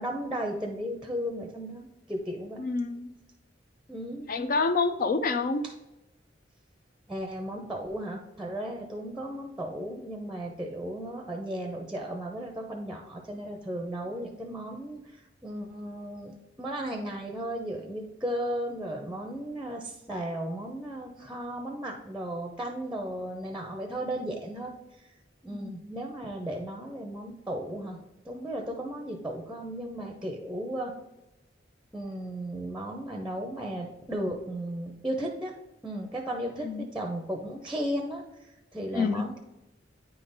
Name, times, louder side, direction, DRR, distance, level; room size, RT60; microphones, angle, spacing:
voice 1, 0.0-2.6 3.9-4.3 7.1-15.0 15.4-24.7 25.4-28.0 28.2-30.9 31.9-35.5 35.8-39.4, right 1 dB, 5° right, 2 dB, 0.6 m, -35 dB
voice 2, 2.6-3.1 4.3-5.6 36.6-36.9 38.9-39.2, left 4 dB, 50° left, 9 dB, 0.4 m, -27 dB
9.1 x 3.8 x 4.0 m, 0.94 s
head